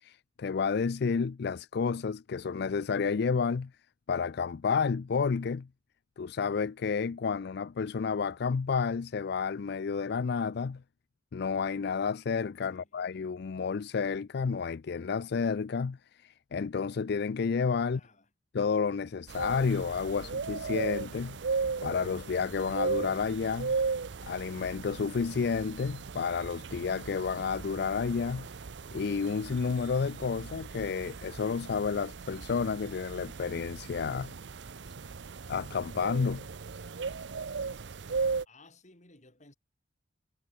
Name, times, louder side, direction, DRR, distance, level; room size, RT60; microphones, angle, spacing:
voice 1, 0.0-3.7 4.1-5.7 6.2-10.8 11.3-18.0 18.5-21.4 21.8-23.8 24.2-28.5 28.9-34.3 35.5-36.5, left 5 dB, 60° left, 0.4 m, -31 dB
voice 2, 12.7-13.1 17.8-18.3 38.4-39.5, left 2 dB, 40° left, 6.7 m, -59 dB
sound 1, 19.3-38.4, right 4 dB, 70° right, 0.7 m, -37 dB
head